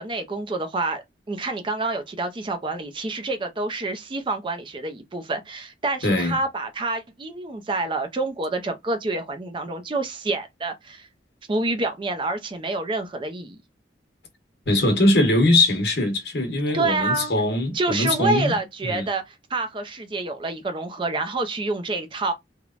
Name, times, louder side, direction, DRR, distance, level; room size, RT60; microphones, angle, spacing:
voice 1, 0.0-11.1 11.5-13.6 16.7-17.3 17.7-22.3, right 2 dB, 30° right, 0.4 m, -27 dB
voice 2, 6.0-6.4 14.7-18.5 18.8-19.1, left 1 dB, 65° left, 1.0 m, -21 dB
3.1 x 2.1 x 2.4 m
head